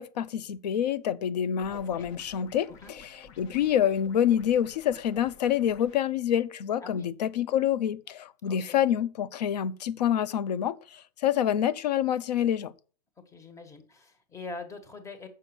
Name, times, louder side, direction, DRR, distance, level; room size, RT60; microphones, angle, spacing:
voice 1, 0.0-12.7, left 10 dB, 85° left, 0.9 m, -27 dB
sound 1, 1.6-6.0, left 5 dB, 50° left, 1.4 m, -52 dB
voice 2, 1.7-2.1 2.7-2.9 6.8-7.1 8.4-8.8 13.3-15.3, left 3 dB, 15° left, 1.6 m, -44 dB
8.4 x 6.7 x 6.1 m
supercardioid pair, 140°, 21 cm